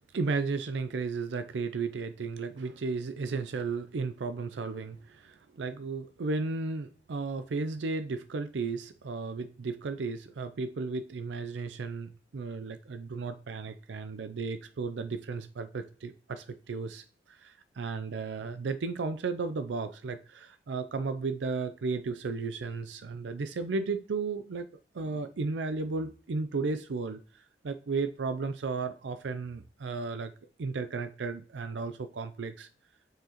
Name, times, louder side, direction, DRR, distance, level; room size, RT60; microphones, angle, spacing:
voice 1, 0.1-24.7 24.9-30.3 30.6-32.7, right 4 dB, 80° right, 10 dB, 0.4 m, -34 dB
9.1 x 4.7 x 2.9 m, 0.41 s
head